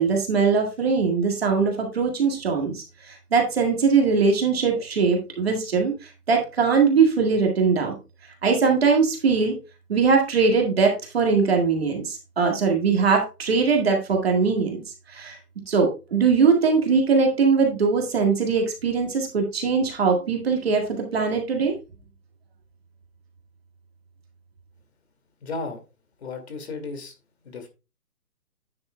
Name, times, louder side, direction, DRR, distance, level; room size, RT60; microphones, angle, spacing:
voice 1, 0.0-7.9 8.4-9.6 9.9-14.8 15.1-15.4 15.7-21.7, right 5 dB, 40° right, 2 dB, 2.0 m, -21 dB
voice 2, 25.4-25.8 26.2-27.1 27.4-27.7, left 3 dB, 40° left, 7 dB, 2.3 m, -34 dB
9.6 x 8.2 x 2.2 m, 0.29 s
hypercardioid pair, 170°, 47 cm